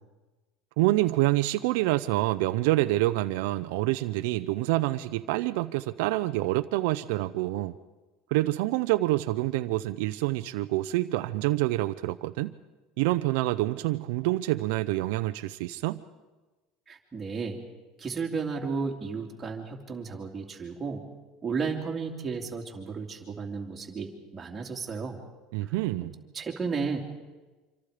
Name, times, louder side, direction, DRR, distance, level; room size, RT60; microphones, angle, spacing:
voice 1, 0.8-7.8 8.3-12.5 13.0-16.0 25.5-26.1, right 17 dB, 75° right, 10 dB, 0.7 m, -27 dB
voice 2, 16.9-17.6 18.0-21.0 21.4-25.2 25.6-25.7 26.3-27.0, right 5 dB, 15° right, -1 dB, 2.7 m, -33 dB
26.0 x 26.0 x 5.0 m, 1.2 s
cardioid pair, 165°, 0 cm